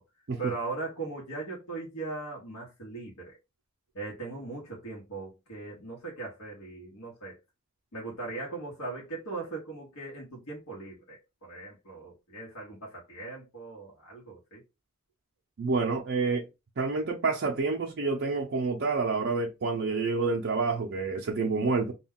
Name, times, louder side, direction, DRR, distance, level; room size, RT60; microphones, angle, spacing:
voice 1, 0.4-3.4 3.9-7.4 7.9-14.6, right 3 dB, 80° left, 1.0 m, -39 dB
voice 2, 15.6-16.5 16.8-21.9, right 4 dB, 50° right, 0.4 m, -28 dB
2.2 x 2.2 x 3.5 m
head